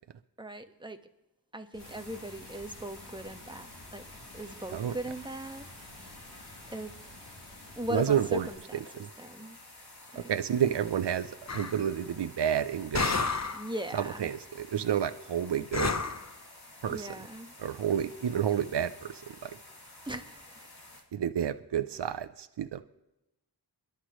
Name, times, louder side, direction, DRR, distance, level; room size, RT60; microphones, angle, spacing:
voice 1, 0.4-1.0 1.5-4.0 4.3-5.7 6.0-6.1 6.7-6.9 7.8-8.8 9.2-9.6 10.1-10.3 13.5-14.3 16.9-17.5 20.0-20.7, equal, 10° right, 6 dB, 1.3 m, -39 dB
Water, 1.7-8.5, left 1 dB, 90° left, 4.7 m, -52 dB
sound 1, 1.8-21.0, left 2 dB, 65° left, 3.5 m, -51 dB
voice 2, 7.9-8.5 9.0-9.1 10.1-13.2 13.9-16.0 16.8-17.1 17.6-19.5 21.1-22.8, right 9 dB, 75° right, 10 dB, 0.7 m, -30 dB
sound 2, 11.5-11.8 12.9-13.7 15.7-16.3, left 4 dB, 40° left, 0.9 m, -30 dB
24.5 x 11.5 x 3.1 m, 0.93 s
wide cardioid pair, 70°, 41 cm